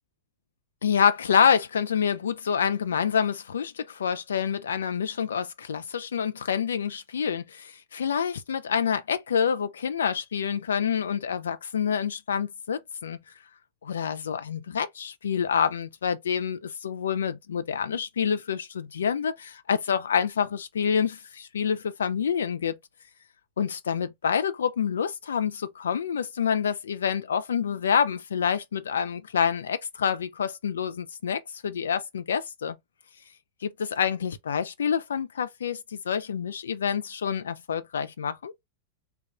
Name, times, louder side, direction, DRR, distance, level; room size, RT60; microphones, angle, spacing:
voice 1, 0.8-13.2 13.8-22.8 23.6-32.8 33.6-38.5, left 7 dB, 65° left, 0.4 m, -27 dB
3.4 x 2.3 x 2.9 m
figure-of-eight pair, 90°, 0 cm